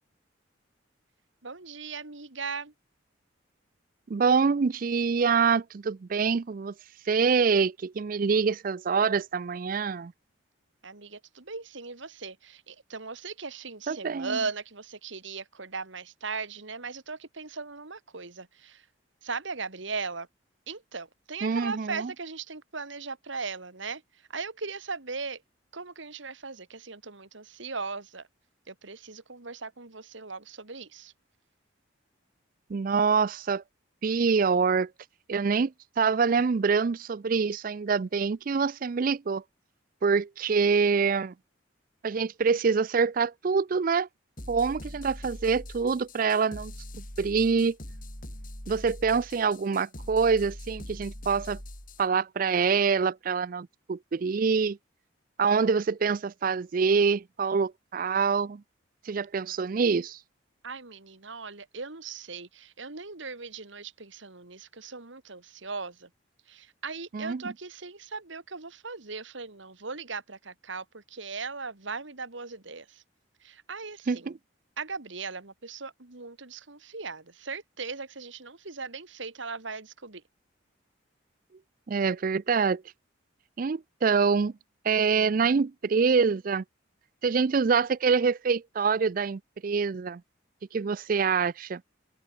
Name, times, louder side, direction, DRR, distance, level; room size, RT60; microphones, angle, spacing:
voice 1, 1.4-2.7 10.8-18.9 19.2-20.3 20.7-24.0 24.3-25.4 25.7-28.3 28.7-31.1 60.6-66.1 66.5-73.0 73.4-74.3 74.8-80.2, right 4 dB, 70° right, 2.1 m, -38 dB
voice 2, 4.1-6.7 7.1-10.1 13.9-14.4 21.4-22.1 32.7-33.6 34.0-34.9 35.3-39.4 40.0-41.3 42.0-44.1 44.5-46.7 47.2-47.8 48.7-51.6 52.0-54.8 55.4-58.6 59.1-60.2 67.1-67.5 74.1-74.4 81.9-82.8 83.6-84.5 84.8-86.6 87.2-90.2 90.7-91.8, right 5 dB, 45° right, 0.4 m, -25 dB
sound 1, 44.4-52.1, left 1 dB, 45° left, 6.2 m, -42 dB
open air
head